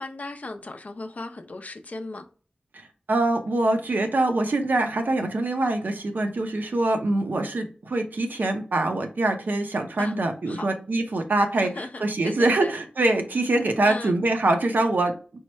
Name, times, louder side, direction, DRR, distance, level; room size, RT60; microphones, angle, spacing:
voice 1, 0.0-2.3 10.0-10.2 10.5-10.7 11.5-12.7 13.8-14.1, left 2 dB, 55° left, 0.6 m, -36 dB
voice 2, 2.7-11.7 12.0-15.1, right 2 dB, 85° right, 0.7 m, -24 dB
4.6 x 2.1 x 4.4 m
wide cardioid pair, 70°, 3 cm